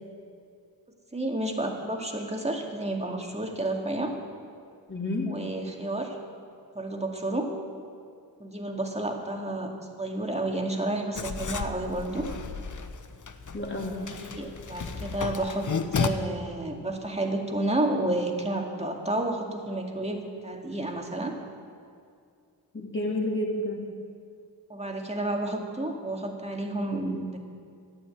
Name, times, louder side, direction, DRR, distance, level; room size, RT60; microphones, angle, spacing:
voice 1, 1.1-4.1 5.3-6.2 6.7-7.5 8.4-12.3 14.0-15.6 16.0-21.3 24.7-27.4, right 1 dB, 15° right, 1 dB, 2.1 m, -31 dB
voice 2, 4.9-5.3 13.5-14.0 22.7-23.9, left 1 dB, 25° left, -2 dB, 3.1 m, -30 dB
Writing, 11.1-16.1, left 5 dB, 45° left, 0.9 m, -33 dB
12.0 x 9.2 x 8.9 m, 2.3 s
cardioid pair, 55°, 43 cm